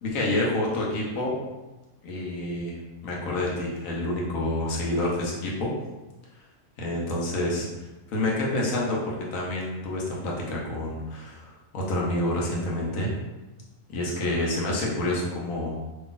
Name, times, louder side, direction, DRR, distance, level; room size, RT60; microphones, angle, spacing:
voice 1, 0.0-1.4 2.0-2.8 3.0-5.7 6.8-7.7 8.1-13.1 13.9-15.8, left 1 dB, 80° left, -3 dB, 1.2 m, -28 dB
2.9 x 2.5 x 3.8 m, 1.1 s
omnidirectional pair, 1.4 m